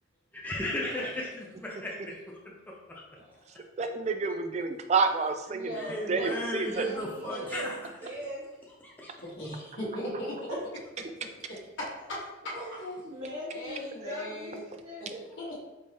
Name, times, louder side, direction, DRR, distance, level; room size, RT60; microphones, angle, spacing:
voice 1, 0.3-2.2 2.9-3.0 5.7-7.8 8.8-9.3, left 1 dB, 10° left, -3 dB, 0.6 m, -35 dB
voice 2, 3.2-3.5 5.5-8.6 9.5-9.7 10.5-10.6 12.5-15.3, right 1 dB, 90° right, -10 dB, 1.2 m, -40 dB
voice 3, 3.8-6.9, right 4 dB, 35° right, 7 dB, 0.3 m, -29 dB
voice 4, 9.1-10.3 12.1-12.2 12.4-12.5 13.5-14.6 15.0-15.1 15.4-15.6, left 1 dB, 65° left, -7 dB, 1.4 m, -37 dB
5.4 x 2.7 x 3.2 m, 1.0 s
head